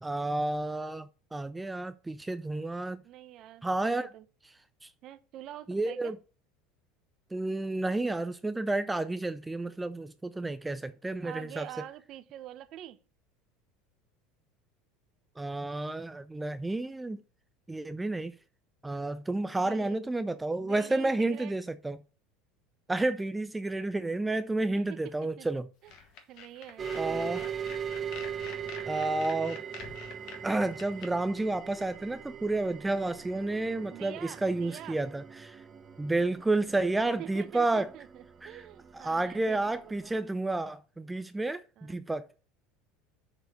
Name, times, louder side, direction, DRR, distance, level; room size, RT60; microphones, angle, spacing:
voice 1, 0.0-3.0 3.6-4.1 4.8-4.9 5.7-6.2 7.3-11.7 15.4-17.2 17.7-18.3 18.8-22.0 22.9-25.7 27.0-27.4 28.9-29.6 30.4-35.6 36.0-37.9 38.4-38.5 38.9-42.3, right 2 dB, 10° right, 0.5 m, -31 dB
voice 2, 3.0-4.3 5.0-6.1 11.2-13.0 19.5-20.0 20.6-21.6 24.8-25.5 25.8-25.9 26.3-27.6 33.9-35.0 37.2-40.2 41.8-41.9, right 13 dB, 55° right, 0.8 m, -46 dB
sound 1, 25.9-31.1, left 6 dB, 60° left, 1.5 m, -47 dB
sound 2, 26.8-40.2, right 7 dB, 30° right, 1.0 m, -41 dB
6.7 x 4.3 x 6.6 m
hypercardioid pair, 85°, 0 cm